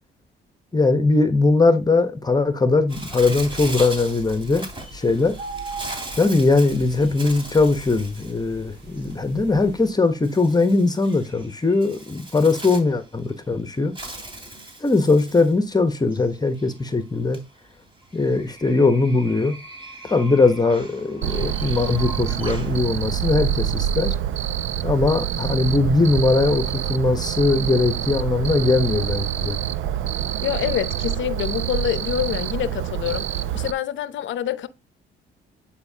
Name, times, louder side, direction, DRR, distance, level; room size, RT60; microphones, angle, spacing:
voice 1, 0.7-4.7 4.9-5.3 6.2-13.9 14.8-17.4 18.1-19.6 20.0-24.2 24.8-29.6, left 3 dB, 20° left, 1.0 m, -20 dB
Bird, 2.9-22.8, right 1 dB, 25° right, 2.8 m, -40 dB
sound 1, 2.9-9.9, right 3 dB, 60° right, 3.7 m, -40 dB
Cricket, 21.2-33.7, right 10 dB, 85° right, 0.6 m, -26 dB
voice 2, 30.4-33.3 33.5-34.7, left 11 dB, 70° left, 0.7 m, -26 dB
9.6 x 4.3 x 2.8 m
cardioid pair, 90°, 20 cm